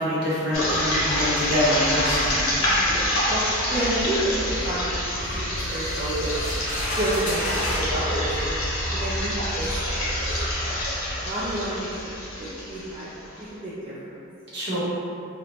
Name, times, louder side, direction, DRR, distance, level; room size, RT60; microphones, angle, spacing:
voice 1, 0.0-2.4 14.5-14.8, equal, 50° right, -8 dB, 0.7 m, -25 dB
sound 1, 0.5-13.4, left 1 dB, 70° left, 0.7 m, -26 dB
voice 2, 2.6-6.6 7.0-8.6 8.9-10.2 10.6-10.8 11.2-12.1 12.4-13.1 13.4-14.2, right 1 dB, 25° right, -11 dB, 0.3 m, -30 dB
sound 2, 5.7-7.9 8.9-9.0 9.6-9.8, left 1 dB, 40° left, 0.5 m, -32 dB
2.5 x 2.1 x 3.0 m, 2.6 s
head